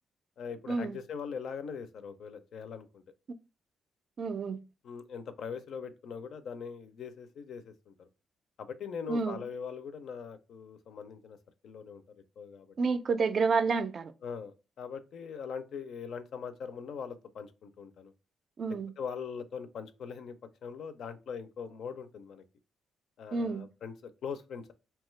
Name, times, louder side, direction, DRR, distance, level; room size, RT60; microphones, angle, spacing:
voice 1, 0.4-3.0 4.8-8.1 8.6-11.4 11.6-12.0 12.4-12.7 14.2-18.1 19.0-20.3 20.6-22.4 23.2-24.7, left 6 dB, 65° left, 0.4 m, -41 dB
voice 2, 4.2-4.6 9.1-9.4 12.8-14.1 18.6-18.9 23.3-23.6, right 4 dB, 45° right, 0.3 m, -29 dB
2.8 x 2.3 x 3.1 m
cardioid pair, 120°, 0 cm